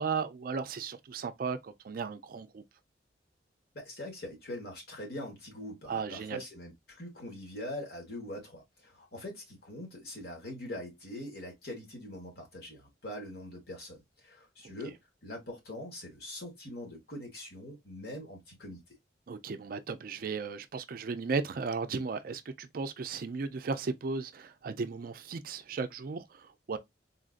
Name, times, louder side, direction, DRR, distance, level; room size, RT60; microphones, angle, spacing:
voice 1, 0.0-2.6 5.9-6.4 14.6-14.7 19.3-26.8, right 4 dB, 50° right, 0.4 m, -35 dB
voice 2, 3.7-18.8, left 1 dB, 60° left, 1.5 m, -43 dB
3.8 x 2.5 x 2.4 m
head